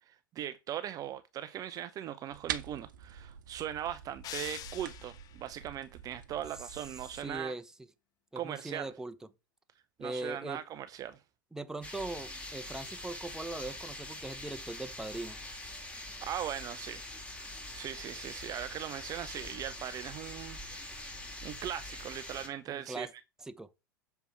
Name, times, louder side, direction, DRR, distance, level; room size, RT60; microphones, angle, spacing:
voice 1, 0.1-7.5 8.3-8.9 10.0-11.2 16.2-17.0 17.3-20.6 21.4-23.1, right 11 dB, 35° right, 0.6 m, -39 dB
sound 1, 2.3-7.4, right 9 dB, 65° right, 0.9 m, -45 dB
sound 2, 4.2-5.5, left 12 dB, 35° left, 0.6 m, -44 dB
voice 2, 7.1-7.7 8.3-9.1 10.0-10.6 11.5-15.4 22.7-23.1 23.5-23.7, right 2 dB, 5° right, 0.8 m, -40 dB
sound 3, 11.8-22.5, left 1 dB, 10° left, 2.2 m, -44 dB
6.9 x 4.5 x 5.7 m
figure-of-eight pair, 85°, 11 cm